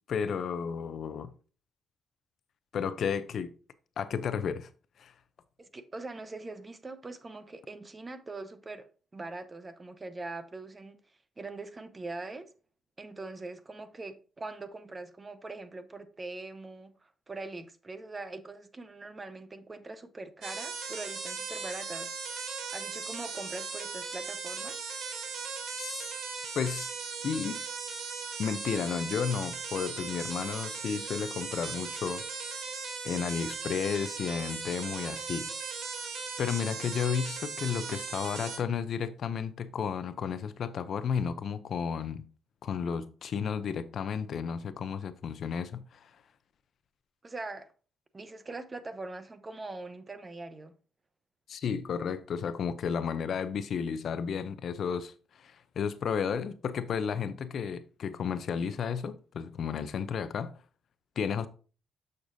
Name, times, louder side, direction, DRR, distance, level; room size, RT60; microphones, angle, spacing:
voice 1, 0.1-1.3 2.7-3.5 4.0-4.7 5.0-5.1 25.8-25.9 26.5-26.9 27.2-27.6 28.4-32.2 33.0-35.5 36.4-42.2 42.6-46.1 51.5-60.5 61.2-61.5, left 7 dB, 60° left, 0.5 m, -32 dB
voice 2, 5.6-8.9 9.1-11.0 11.4-12.5 13.0-22.1 22.7-24.8 47.2-47.7 48.1-50.7, right 3 dB, 25° right, 0.8 m, -42 dB
sound 1, 20.4-38.6, right 5 dB, 75° right, 1.7 m, -38 dB
7.0 x 6.6 x 2.6 m
cardioid pair, 90°, 0 cm